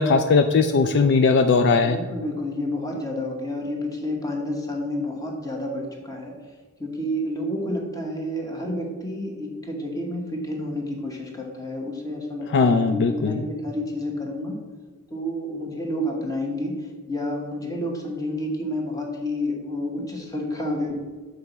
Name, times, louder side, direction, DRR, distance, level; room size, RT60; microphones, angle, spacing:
voice 1, 0.0-2.0 12.5-13.4, left 4 dB, 50° left, 7 dB, 0.3 m, -19 dB
voice 2, 1.8-6.3 6.8-14.6 15.1-16.7 17.1-21.0, left 1 dB, 15° left, 0 dB, 1.2 m, -29 dB
6.6 x 4.0 x 5.5 m, 1.4 s
head